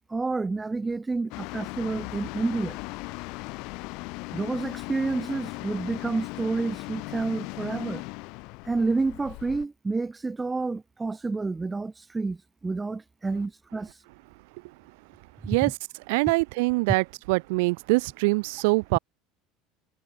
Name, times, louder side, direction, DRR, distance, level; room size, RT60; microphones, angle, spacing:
voice 1, 0.1-2.8 4.3-8.0 8.7-13.9, right 3 dB, 10° right, 1.0 m, -29 dB
sound 1, 1.3-9.7, left 27 dB, 55° left, 3.8 m, -38 dB
voice 2, 16.1-19.0, right 27 dB, 75° right, 0.4 m, -24 dB
cardioid pair, 175°, 0 cm